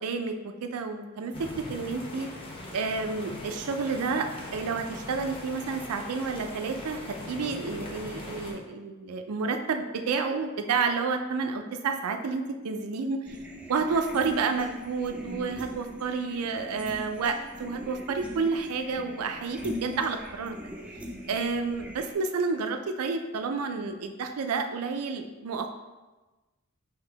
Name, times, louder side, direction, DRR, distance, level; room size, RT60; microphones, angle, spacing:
voice 1, 0.0-2.3 2.7-13.2 13.7-20.6 21.3-25.7, right 4 dB, 75° right, 6 dB, 0.4 m, -30 dB
sound 1, 1.3-8.5, left 1 dB, 25° left, 0.7 m, -41 dB
sound 2, 13.3-22.1, equal, 5° right, 0.3 m, -41 dB
3.6 x 2.8 x 4.6 m, 1.2 s
head